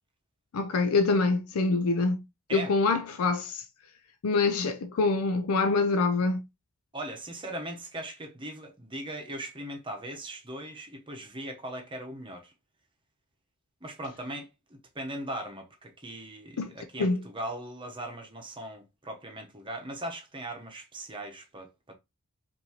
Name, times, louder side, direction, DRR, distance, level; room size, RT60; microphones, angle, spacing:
voice 1, 0.5-2.2 2.5-3.6 4.2-6.4 16.6-16.7 17.0-17.2, left 3 dB, 85° left, 0.5 m, -25 dB
voice 2, 6.9-12.5 13.8-22.0, right 1 dB, 25° right, 0.9 m, -39 dB
5.2 x 2.7 x 2.9 m
head